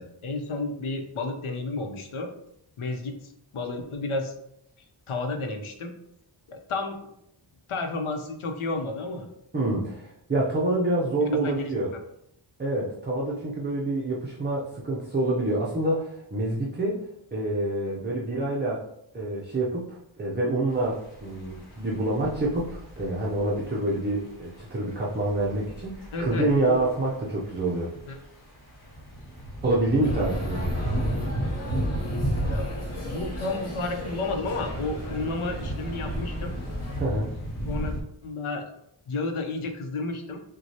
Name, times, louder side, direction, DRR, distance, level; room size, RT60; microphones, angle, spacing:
voice 1, 0.0-2.3 2.8-3.2 3.5-4.3 5.1-5.9 6.5-7.0 7.7-9.3 11.2-11.7 26.1-26.8 28.1-28.2 32.5-32.7 33.0-36.5 37.6-37.9 38.2-38.6 39.1-40.4, left 3 dB, 90° left, 4 dB, 0.8 m, -31 dB
voice 2, 9.5-11.9 12.6-17.1 17.3-18.8 19.1-27.9 29.6-30.7 37.0-37.3, right 2 dB, 20° right, -4 dB, 0.5 m, -27 dB
sound 1, 20.7-38.0, right 1 dB, 50° left, 1.3 m, -34 dB
sound 2, 30.0-37.0, left 1 dB, 30° left, 0.8 m, -37 dB
6.0 x 2.3 x 2.8 m, 0.77 s
wide cardioid pair, 160°, 49 cm